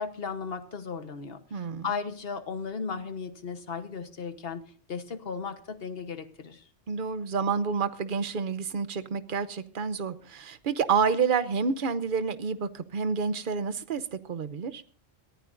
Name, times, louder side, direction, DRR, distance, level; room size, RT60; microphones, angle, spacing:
voice 1, 0.0-4.6 4.9-6.6, left 5 dB, 60° left, 1.4 m, -36 dB
voice 2, 1.5-1.9 6.9-14.8, right 5 dB, 50° right, 0.9 m, -29 dB
22.5 x 15.0 x 2.6 m
omnidirectional pair, 1.1 m